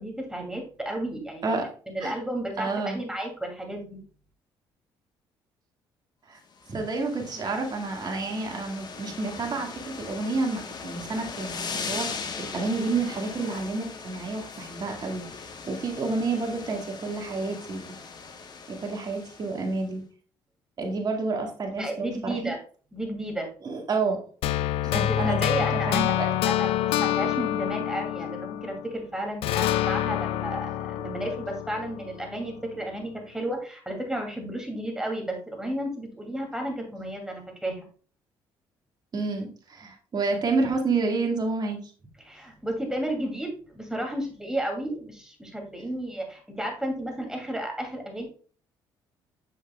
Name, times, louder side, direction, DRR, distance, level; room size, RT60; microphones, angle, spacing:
voice 1, 0.0-1.6 1.9-4.0 21.8-22.6 22.9-23.5 24.8-26.2 26.4-37.9 42.2-48.2, right 1 dB, 5° right, 2 dB, 2.5 m, -33 dB
voice 2, 2.6-3.0 6.3-6.4 6.7-17.8 18.7-20.0 20.8-22.4 23.6-24.5 24.8-26.4 39.1-41.9, right 3 dB, 45° right, 2 dB, 1.8 m, -29 dB
sound 1, 6.6-19.8, left 5 dB, 45° left, 1.2 m, -39 dB
sound 2, 24.4-29.0 29.4-32.5, left 13 dB, 75° left, 0.4 m, -27 dB
7.5 x 6.3 x 2.3 m, 0.41 s
supercardioid pair, 70°, 10 cm